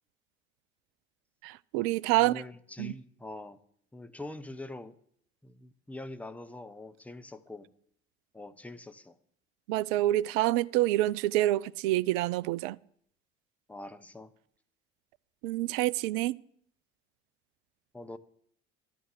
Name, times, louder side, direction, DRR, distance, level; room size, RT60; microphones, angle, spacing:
voice 1, 1.4-2.4 2.8-2.9 9.7-12.8 15.4-16.4, right 16 dB, 55° right, 0.4 m, -27 dB
voice 2, 2.1-3.6 3.9-5.0 5.4-7.7 8.3-9.2 13.7-14.3 17.9-18.2, left 2 dB, 5° left, 0.8 m, -44 dB
12.0 x 6.5 x 7.7 m
figure-of-eight pair, 60°, 33 cm